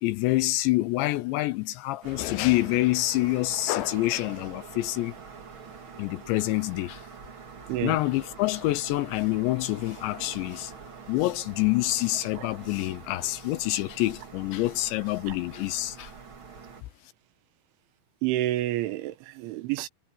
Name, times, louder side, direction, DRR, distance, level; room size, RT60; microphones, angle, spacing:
voice 1, 0.0-5.2 6.0-7.1 7.8-10.7 11.1-16.1, left 18 dB, 80° left, 2.7 m, -27 dB
sound 1, 2.0-16.8, right 5 dB, 40° right, 1.9 m, -45 dB
voice 2, 18.2-19.9, right 15 dB, 80° right, 3.5 m, -29 dB
omnidirectional pair, 5.5 m